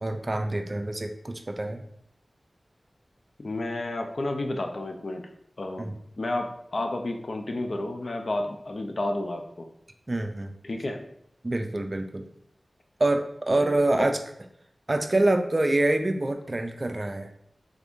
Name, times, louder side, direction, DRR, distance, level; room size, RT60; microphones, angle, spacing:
voice 1, 0.0-1.8 5.8-6.0 10.1-10.5 11.4-12.3 13.0-14.2 14.9-17.3, right 2 dB, 40° right, 6 dB, 0.4 m, -26 dB
voice 2, 3.4-5.2 5.6-5.9 6.2-9.7 10.6-11.1 13.5-14.1, left 2 dB, 60° left, 4 dB, 0.5 m, -31 dB
3.5 x 2.5 x 3.5 m, 0.72 s
wide cardioid pair, 65°, 0 cm